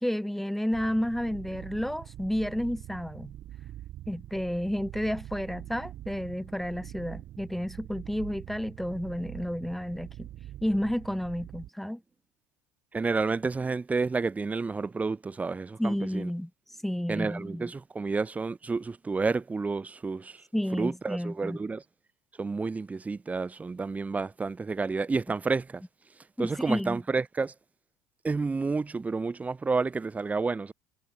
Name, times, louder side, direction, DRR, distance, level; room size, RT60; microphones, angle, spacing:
voice 1, 0.0-3.3 4.1-10.3 10.6-12.0 15.8-16.5 16.8-17.7 20.5-21.6 26.4-27.0, equal, ahead, 2.7 m, -31 dB
sound 1, 0.7-11.7, right 13 dB, 45° right, 4.3 m, -44 dB
voice 2, 12.9-16.3 17.1-20.4 20.7-21.8 22.4-25.8 26.4-27.5 28.2-30.7, right 4 dB, 15° right, 1.0 m, -30 dB
figure-of-eight pair, 70°, 9 cm